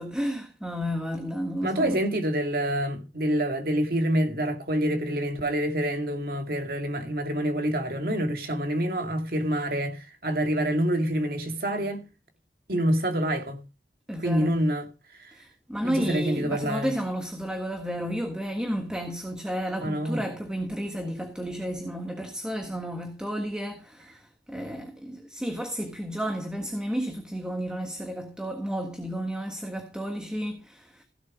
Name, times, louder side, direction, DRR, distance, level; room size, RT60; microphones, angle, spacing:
voice 1, 0.0-2.0 14.1-14.6 15.3-31.0, equal, 5° right, 1.5 m, -32 dB
voice 2, 1.6-12.0 12.7-13.6 14.2-14.8 15.2-15.3 15.8-16.9 19.8-20.2, right 1 dB, 55° right, 2.3 m, -27 dB
16.0 x 8.0 x 5.0 m
head